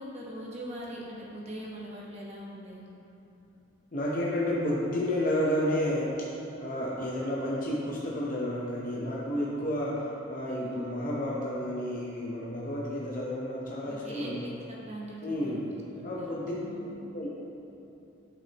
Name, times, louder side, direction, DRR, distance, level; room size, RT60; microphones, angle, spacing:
voice 1, 0.0-2.9 10.5-11.1 13.8-16.3 16.5-17.0, equal, 35° right, -4 dB, 1.2 m, -42 dB
voice 2, 3.9-6.3 6.6-14.4 15.2-15.6 16.0-17.3, left 1 dB, 45° left, -5 dB, 0.8 m, -31 dB
11.0 x 5.8 x 2.9 m, 2.8 s
head